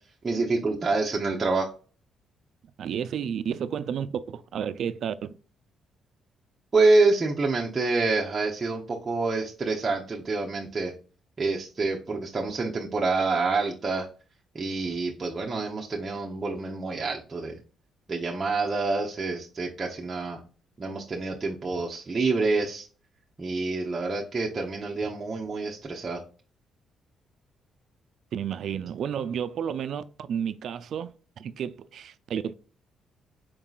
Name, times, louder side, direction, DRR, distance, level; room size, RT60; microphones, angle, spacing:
voice 1, 0.2-1.7 6.7-10.9 11.4-14.1 14.5-17.6 18.1-20.4 20.8-22.9 23.4-26.2, right 3 dB, 30° right, 0.7 m, -27 dB
voice 2, 2.8-5.3 28.3-32.5, right 8 dB, 65° right, 0.3 m, -31 dB
4.6 x 3.7 x 2.3 m
cardioid pair, 90°, 0 cm